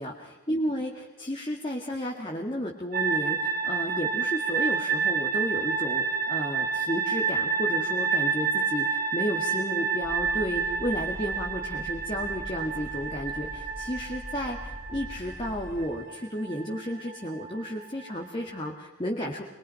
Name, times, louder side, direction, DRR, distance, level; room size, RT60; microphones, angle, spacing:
voice 1, 0.0-19.4, equal, 25° left, 0 dB, 1.9 m, -33 dB
sound 1, 2.9-18.7, right 5 dB, 45° right, 2.2 m, -30 dB
sound 2, 10.0-15.9, equal, 5° left, 3.6 m, -42 dB
23.5 x 21.5 x 5.8 m, 1.1 s
head